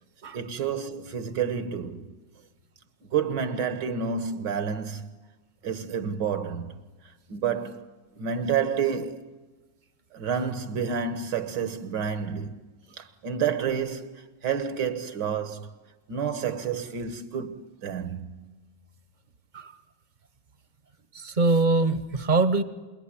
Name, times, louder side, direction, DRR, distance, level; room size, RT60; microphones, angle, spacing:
voice 1, 0.3-2.1 3.1-5.1 5.6-6.8 7.3-7.9 8.2-9.3 10.1-12.6 12.9-15.7 16.1-18.6, right 7 dB, 70° right, 1.8 m, -29 dB
voice 2, 21.1-22.6, right 3 dB, 35° right, 0.9 m, -23 dB
27.5 x 20.5 x 10.0 m
omnidirectional pair, 2.0 m